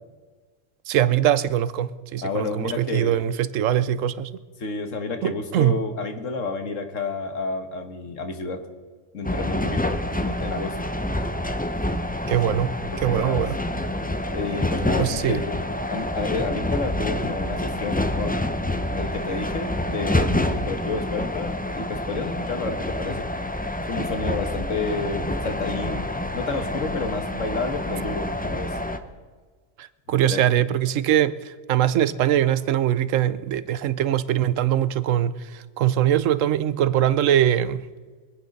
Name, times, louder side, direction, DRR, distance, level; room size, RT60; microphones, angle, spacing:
voice 1, 0.9-4.3 5.2-5.8 12.3-12.7 13.0-13.6 15.0-15.4 29.8-37.8, right 11 dB, 75° right, 1.0 m, -22 dB
voice 2, 2.2-3.3 4.6-8.6 9.1-10.9 12.5-12.6 12.9-13.5 14.3-15.6 15.9-18.5 19.0-23.3 23.9-28.8 30.1-30.4, left 3 dB, 70° left, 1.7 m, -30 dB
sound 1, 9.2-29.0, left 1 dB, 10° left, 0.5 m, -27 dB
24.5 x 9.1 x 5.3 m
omnidirectional pair, 1.4 m